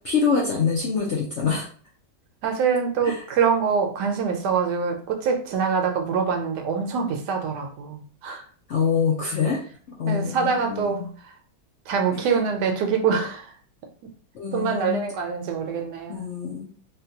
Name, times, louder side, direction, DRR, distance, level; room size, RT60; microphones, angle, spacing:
voice 1, 0.0-1.7 3.0-3.2 8.7-9.6 9.9-11.1 12.1-12.4 14.3-15.0 16.1-16.7, left 6 dB, 70° left, 0.6 m, -25 dB
voice 2, 2.4-8.4 10.1-11.3 11.9-13.5 14.5-16.2, right 6 dB, 75° right, 1.1 m, -25 dB
3.6 x 2.2 x 2.7 m
omnidirectional pair, 1.9 m